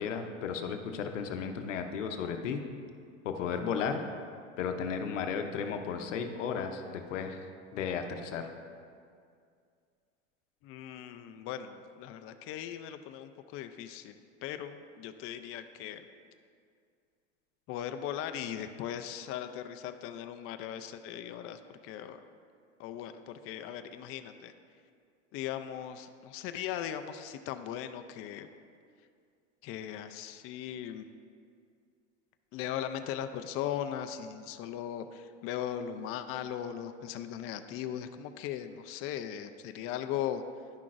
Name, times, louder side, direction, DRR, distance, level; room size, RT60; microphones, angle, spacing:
voice 1, 0.0-2.6 3.2-4.0 4.6-7.5 7.7-8.5, left 6 dB, 85° left, 6 dB, 0.7 m, -34 dB
voice 2, 10.6-14.1 14.4-16.0 17.7-22.2 22.8-24.5 25.3-28.5 29.6-31.0 32.5-40.4, left 10 dB, 40° left, 8 dB, 0.4 m, -38 dB
10.5 x 5.9 x 2.5 m, 2.2 s
hypercardioid pair, 100°, 36 cm